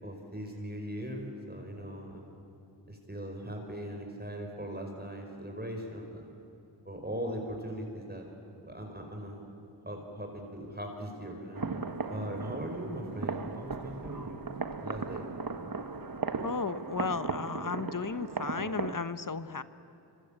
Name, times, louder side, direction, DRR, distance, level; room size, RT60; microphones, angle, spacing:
voice 1, 0.0-2.4 2.9-6.3 6.9-8.3 8.6-9.4 9.9-11.6 12.1-14.4 14.8-15.3, equal, 20° right, 2 dB, 5.2 m, -39 dB
sound 1, 11.5-18.9, right 4 dB, 50° right, 1.6 m, -37 dB
voice 2, 16.4-19.6, left 4 dB, 45° left, 13 dB, 1.1 m, -34 dB
26.0 x 25.5 x 8.9 m, 2.8 s
cardioid pair, 40°, 45 cm